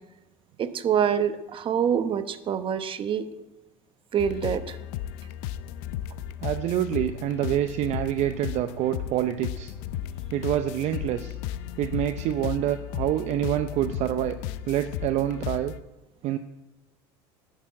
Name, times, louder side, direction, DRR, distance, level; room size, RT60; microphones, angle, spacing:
voice 1, 0.6-3.3 4.1-4.8, right 8 dB, 40° right, 10 dB, 1.1 m, -26 dB
sound 1, 4.2-15.8, left 11 dB, 70° left, 0.6 m, -35 dB
voice 2, 6.4-9.7 10.3-11.4 11.8-14.4 14.7-15.7 16.2-16.4, right 12 dB, 55° right, 9 dB, 0.6 m, -27 dB
11.0 x 6.8 x 8.5 m, 0.99 s
supercardioid pair, 95°, 14 cm